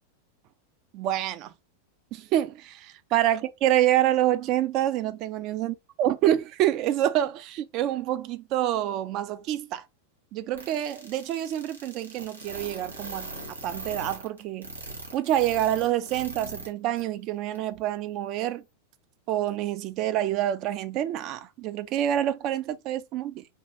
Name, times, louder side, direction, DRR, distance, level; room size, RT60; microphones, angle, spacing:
voice 1, 0.9-1.5 2.1-9.8 10.3-13.3 13.6-14.7 15.1-18.6 19.3-23.4, right 12 dB, 40° right, 0.3 m, -27 dB
sound 1, 10.5-16.7 17.0-17.1 17.5-17.6, right 2 dB, 75° right, 0.8 m, -39 dB
2.9 x 2.2 x 2.9 m
figure-of-eight pair, 90°, 0 cm